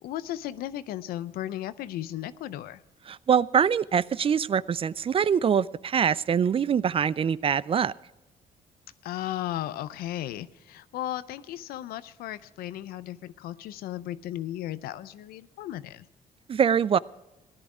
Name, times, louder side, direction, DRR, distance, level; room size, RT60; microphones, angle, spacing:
voice 1, 0.0-2.8 9.0-16.1, left 13 dB, 85° left, 15 dB, 0.5 m, -35 dB
voice 2, 3.1-7.9 16.5-17.0, right 7 dB, 40° right, 20 dB, 0.4 m, -24 dB
16.5 x 11.0 x 4.9 m, 0.99 s
cardioid pair, 80°, 15 cm